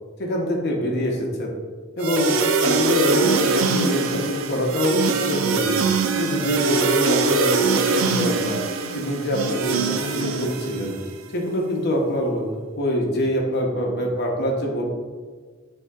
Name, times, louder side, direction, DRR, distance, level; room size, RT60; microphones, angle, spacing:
voice 1, 0.2-1.5 2.0-2.3 2.6-5.8 6.1-8.6 8.9-10.9 11.3-12.4 12.8-14.9, equal, 55° left, 0 dB, 0.8 m, -25 dB
sound 1, 2.0-11.1, right 4 dB, 80° right, 0.4 m, -22 dB
8.0 x 2.7 x 2.4 m, 1.5 s
head